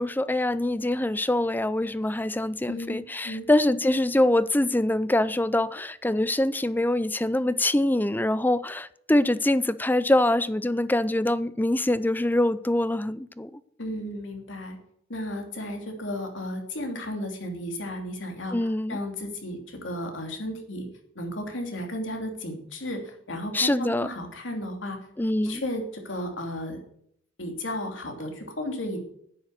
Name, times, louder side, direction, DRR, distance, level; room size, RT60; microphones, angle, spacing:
voice 1, 0.0-13.6 18.5-19.0 23.5-24.1 25.2-25.6, left 1 dB, 10° left, 0.5 m, -24 dB
voice 2, 2.7-3.5 13.8-14.8 15.1-20.9 21.1-25.0 25.4-26.8 27.4-29.0, left 1 dB, 70° left, 3.0 m, -34 dB
10.0 x 9.6 x 6.5 m
head